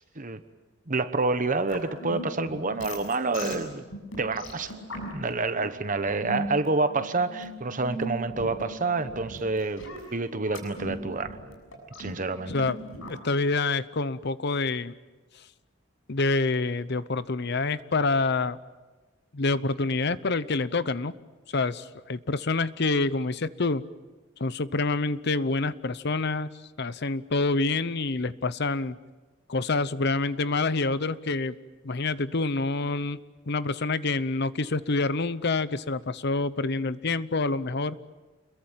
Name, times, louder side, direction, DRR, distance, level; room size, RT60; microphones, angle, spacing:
voice 1, 0.9-3.8 4.2-4.7 5.1-9.8 10.1-11.4 12.0-12.5, right 3 dB, 40° right, 10 dB, 1.1 m, -28 dB
sound 1, 1.7-13.1, right 1 dB, 85° left, 7.2 m, -39 dB
voice 2, 12.5-14.9 16.1-18.6 19.3-21.1 21.5-23.8 24.4-26.5 26.8-29.0 29.5-31.6 31.8-33.2 33.5-38.0, left 3 dB, 55° left, 15 dB, 0.8 m, -27 dB
29.0 x 22.0 x 7.5 m, 1.2 s
head